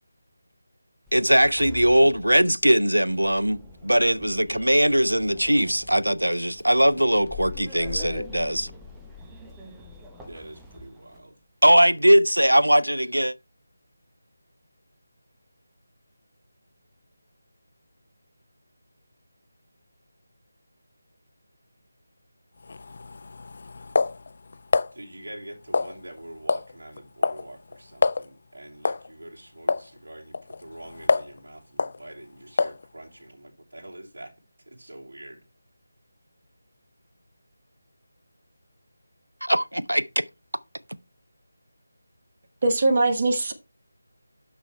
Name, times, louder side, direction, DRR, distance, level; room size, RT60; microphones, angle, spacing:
Sliding door, 1.1-11.2, left 3 dB, 5° right, 0.8 m, -43 dB
voice 1, 1.1-8.7 11.6-13.3 39.4-40.2, equal, 80° right, 0.5 m, -20 dB
voice 2, 10.2-11.4 24.9-34.3 34.7-35.4, right 1 dB, 55° right, 2.8 m, -44 dB
sound 1, 22.6-24.9 25.7-26.2 26.5-26.7 27.0-27.4 27.7-27.8 28.0-28.2 28.8-29.1 29.7-29.9 30.3-31.4 31.8-32.0 32.6-32.8, left 4 dB, 40° left, 0.4 m, -25 dB
voice 3, 42.6-43.5, right 2 dB, 35° right, 1.1 m, -21 dB
9.9 x 6.1 x 3.2 m
figure-of-eight pair, 160°, 0 cm